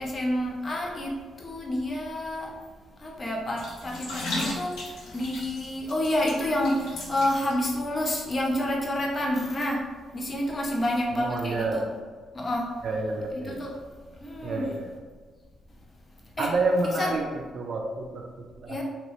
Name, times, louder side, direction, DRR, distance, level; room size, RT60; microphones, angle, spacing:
voice 1, 0.0-2.5 3.0-11.8 12.3-12.8 13.3-13.7 14.2-14.7 16.4-16.5 17.0-17.1 18.7-18.8, left 1 dB, 35° left, -1 dB, 0.7 m, -29 dB
sound 1, 3.6-7.8 8.1-8.2, left 2 dB, 80° left, 0.9 m, -36 dB
voice 2, 11.2-11.9 12.8-13.6 14.4-14.9 16.4-18.8, right 2 dB, 65° right, 1 dB, 0.4 m, -29 dB
3.0 x 2.9 x 3.1 m, 1.5 s
cardioid pair, 90°, 0 cm